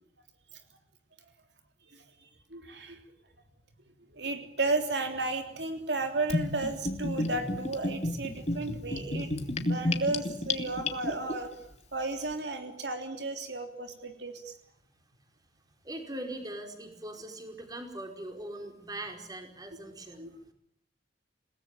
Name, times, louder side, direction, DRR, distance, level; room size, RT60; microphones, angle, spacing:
voice 1, 2.5-3.0 4.1-11.5 11.9-14.5 20.2-20.3, right 2 dB, 75° right, 5 dB, 3.3 m, -33 dB
Gurgling / Bathtub (filling or washing), 6.3-11.3, left 2 dB, 40° left, 2.5 m, -31 dB
voice 2, 15.8-20.3, right 1 dB, 25° right, 4 dB, 5.0 m, -41 dB
29.5 x 18.5 x 9.2 m, 0.71 s
head